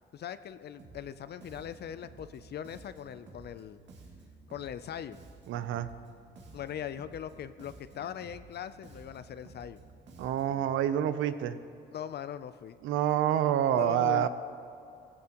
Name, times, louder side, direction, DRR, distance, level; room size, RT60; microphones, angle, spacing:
voice 1, 0.1-3.8 4.5-5.2 6.5-9.8 11.9-12.8 13.7-14.3, left 9 dB, 55° left, 12 dB, 0.5 m, -40 dB
Bass guitar, 0.8-10.7, right 3 dB, 65° right, 2.2 m, -53 dB
voice 2, 5.5-5.9 10.2-11.6 12.8-14.3, right 11 dB, 90° right, 12 dB, 0.6 m, -27 dB
16.5 x 15.5 x 3.0 m, 2.5 s
cardioid pair, 90°, 20 cm